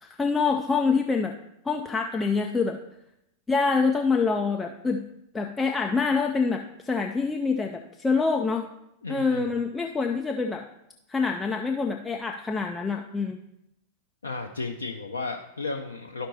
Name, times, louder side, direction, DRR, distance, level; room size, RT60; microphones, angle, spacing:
voice 1, 0.0-1.3 1.7-2.8 3.5-5.0 5.3-8.7 9.1-10.7 11.1-13.4, left 4 dB, 10° left, 3 dB, 0.5 m, -26 dB
voice 2, 9.0-9.5 14.2-16.3, left 3 dB, 75° left, 2 dB, 0.5 m, -34 dB
12.5 x 5.1 x 2.8 m, 0.83 s
figure-of-eight pair, 90°, 0 cm